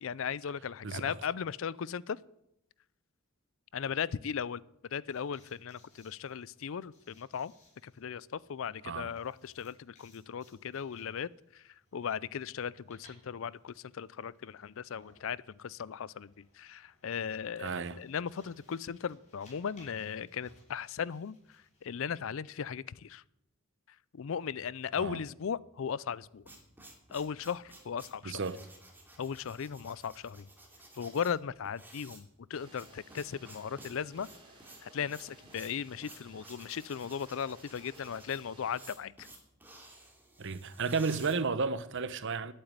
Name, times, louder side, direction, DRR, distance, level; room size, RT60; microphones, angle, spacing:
voice 1, 0.0-2.2 3.7-4.6 4.9-7.5 7.8-11.6 11.9-21.4 21.8-23.2 24.1-26.4 27.1-28.3 29.2-30.5 30.9-34.3 34.8-39.3, left 7 dB, 70° left, 0.4 m, -37 dB
voice 2, 0.8-1.2 8.8-9.1 17.6-18.0 25.0-25.2 28.2-28.6 40.4-42.5, right 4 dB, 60° right, 0.8 m, -33 dB
sound 1, 5.1-22.2, left 1 dB, 35° left, 5.8 m, -65 dB
sound 2, 26.1-42.0, right 2 dB, 10° right, 2.6 m, -54 dB
sound 3, 32.5-38.9, right 1 dB, 25° right, 3.3 m, -58 dB
11.0 x 8.9 x 8.9 m
head